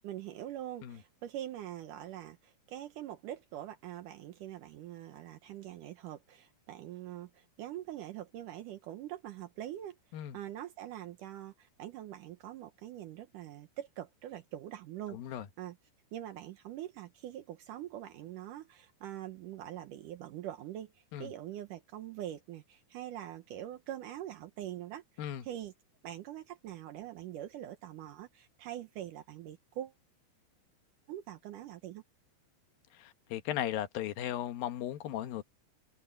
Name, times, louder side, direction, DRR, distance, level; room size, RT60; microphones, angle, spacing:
voice 1, 0.0-10.0 10.3-15.8 16.1-25.7 26.0-29.9 31.1-32.0, right 12 dB, 85° right, 1.8 m, -44 dB
voice 2, 15.1-15.5 21.1-21.3 25.2-25.4 32.9-35.4, left 11 dB, 65° left, 2.6 m, -36 dB
open air
omnidirectional pair, 5.2 m